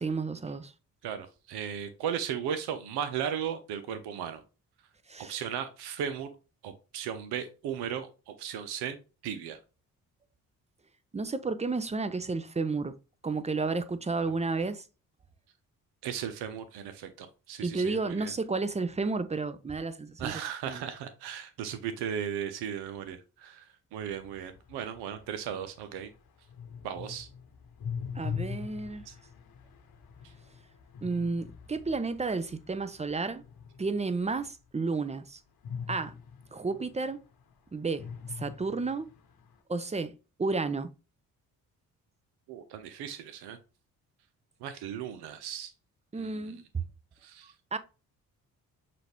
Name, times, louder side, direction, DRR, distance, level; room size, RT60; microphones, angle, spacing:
voice 1, 0.0-0.7 5.1-5.4 11.1-12.9 13.2-14.8 17.6-20.3 20.7-20.8 28.1-29.0 31.0-33.4 33.8-35.4 35.9-36.1 36.5-37.2 37.7-38.1 38.4-39.1 39.7-40.1 40.4-40.9 46.1-46.8 47.7-47.8, right 3 dB, 15° right, 0.6 m, -31 dB
voice 2, 1.0-4.4 5.2-6.3 6.6-9.0 9.2-9.6 14.3-14.4 16.0-18.3 20.2-26.1 26.8-27.3 29.1-29.2 30.2-30.3 42.5-43.6 44.6-45.7 46.2-46.6 47.2-47.5, right 8 dB, 75° right, 0.7 m, -36 dB
sound 1, 24.1-34.3 35.6-37.5 37.9-39.5, left 7 dB, 65° left, 1.1 m, -42 dB
5.8 x 2.4 x 3.4 m
hypercardioid pair, 50°, 40 cm